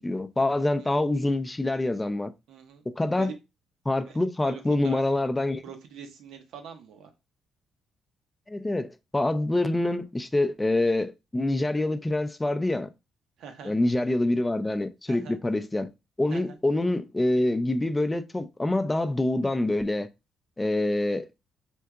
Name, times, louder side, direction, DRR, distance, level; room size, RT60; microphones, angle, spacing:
voice 1, 0.0-2.3 2.9-3.3 3.9-5.6 8.5-12.9 13.6-15.9 16.2-20.1 20.6-21.3, left 2 dB, 15° left, 0.4 m, -26 dB
voice 2, 2.5-3.3 3.9-4.2 4.4-5.0 5.6-7.1 13.4-13.7 15.1-15.4 16.3-16.6, right 7 dB, 80° right, 0.7 m, -44 dB
4.4 x 2.7 x 2.3 m
cardioid pair, 90°, 0 cm